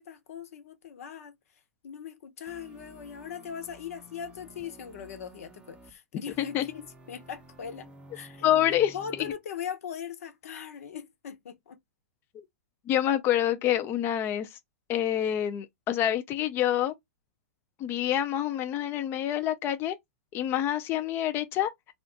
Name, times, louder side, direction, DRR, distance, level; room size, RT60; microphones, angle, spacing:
voice 1, 0.0-1.3 1.8-11.8, left 8 dB, 70° left, 0.7 m, -40 dB
sound 1, 2.5-5.9 6.3-9.3, right 1 dB, 10° right, 0.6 m, -52 dB
voice 2, 8.4-8.9 12.9-14.5 14.9-16.9 17.8-20.0 20.3-21.7, left 11 dB, 30° left, 0.4 m, -27 dB
2.5 x 2.3 x 3.7 m
hypercardioid pair, 130°, 8 cm